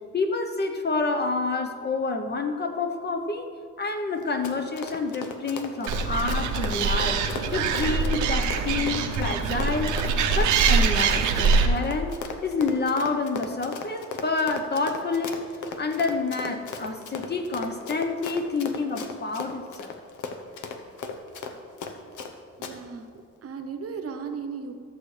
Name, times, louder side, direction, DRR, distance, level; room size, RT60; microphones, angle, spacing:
voice 1, 0.1-3.5 3.8-7.2 7.5-12.1 12.4-15.4 15.8-19.9, left 3 dB, 35° left, 5 dB, 0.9 m, -28 dB
Run, 4.2-22.3 22.6-22.7, left 5 dB, 80° left, 0.9 m, -36 dB
Animal, 5.9-11.7, right 5 dB, 85° right, 0.9 m, -24 dB
voice 2, 22.6-23.1 23.4-24.7, right 5 dB, 50° right, 7 dB, 1.0 m, -35 dB
14.0 x 7.2 x 3.3 m, 2.1 s
cardioid pair, 90°, 30 cm